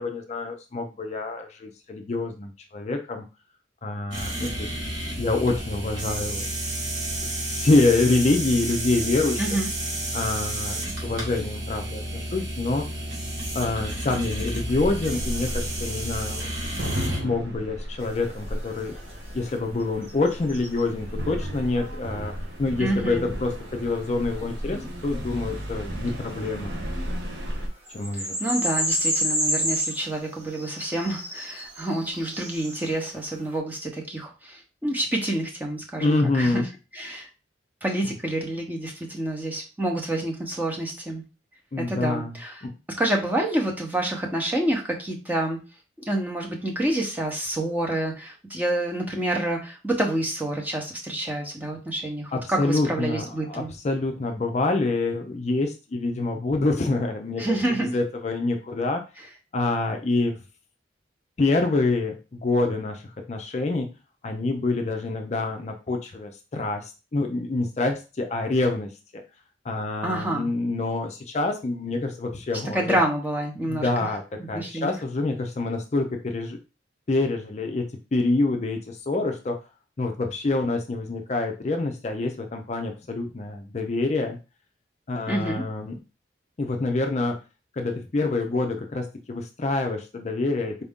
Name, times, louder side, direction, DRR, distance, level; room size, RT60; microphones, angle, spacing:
voice 1, 0.0-3.2 3.8-4.7 5.2-6.5 7.5-9.5 10.1-12.9 13.5-16.5 17.2-18.9 19.3-22.3 22.6-26.8 27.9-28.3 36.0-36.7 41.7-42.4 42.6-42.7 52.3-57.4 57.7-59.0 59.5-60.4 61.4-63.9 64.2-68.9 69.6-73.0 73.7-76.6 77.1-79.6 80.0-84.4 85.1-86.0 86.6-87.4 87.7-90.8, left 2 dB, 35° left, 4 dB, 0.4 m, -26 dB
sound 1, 4.1-17.2, right 1 dB, 90° right, 1.7 m, -31 dB
voice 2, 9.4-9.7 22.8-23.2 28.1-36.6 36.9-37.3 37.8-41.2 41.8-42.6 43.0-45.6 46.1-53.7 57.4-57.9 70.0-70.5 72.7-73.9 74.5-74.9 85.3-85.6, right 1 dB, 10° right, 0 dB, 0.8 m, -28 dB
sound 2, 14.7-27.7, equal, 70° right, 0.9 m, -34 dB
sound 3, 18.0-19.6 20.0-20.8 24.4-26.1 26.9-27.0 27.4-27.5 27.9-33.0, equal, 35° right, 1.1 m, -30 dB
4.3 x 2.5 x 3.5 m, 0.30 s
head